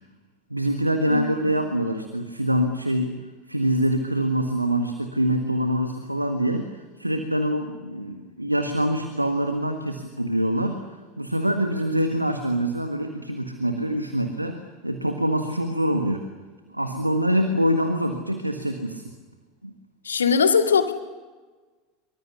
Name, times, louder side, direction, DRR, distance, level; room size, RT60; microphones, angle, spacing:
voice 1, 0.5-3.2 3.5-10.8 11.2-16.2 16.7-19.0 19.6-19.7, equal, 90° right, 6 dB, 1.7 m, -25 dB
voice 2, 1.1-1.5 20.0-20.9, left 6 dB, 75° left, 5 dB, 2.3 m, -21 dB
25.5 x 24.0 x 7.0 m, 1.3 s
figure-of-eight pair, 80°, 0 cm